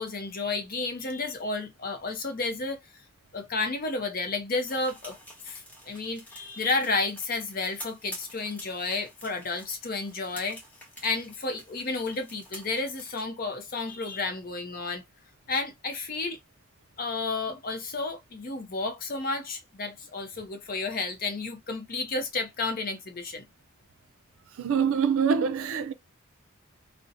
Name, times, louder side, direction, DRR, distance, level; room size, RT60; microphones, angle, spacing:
voice 1, 0.0-3.0 3.3-5.2 5.4-10.6 11.0-15.0 15.5-16.4 17.0-23.4, left 3 dB, 40° left, 0.5 m, -31 dB
sound 1, 4.6-13.2, equal, 10° left, 0.8 m, -48 dB
voice 2, 24.6-25.9, right 6 dB, 70° right, 0.4 m, -25 dB
2.7 x 2.1 x 2.5 m
head